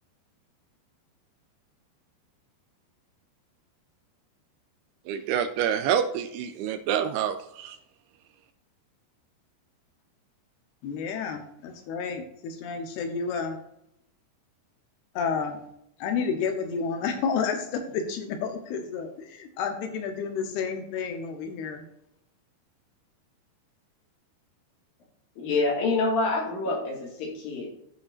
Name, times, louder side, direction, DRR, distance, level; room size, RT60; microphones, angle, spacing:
voice 1, 5.1-7.8, right 9 dB, 85° right, 9 dB, 2.5 m, -27 dB
voice 2, 10.8-13.6 15.2-15.6 16.0-21.8, left 6 dB, 75° left, 5 dB, 2.9 m, -30 dB
voice 3, 25.4-27.7, left 3 dB, 60° left, -1 dB, 3.6 m, -27 dB
14.5 x 5.7 x 2.6 m, 0.76 s
omnidirectional pair, 4.9 m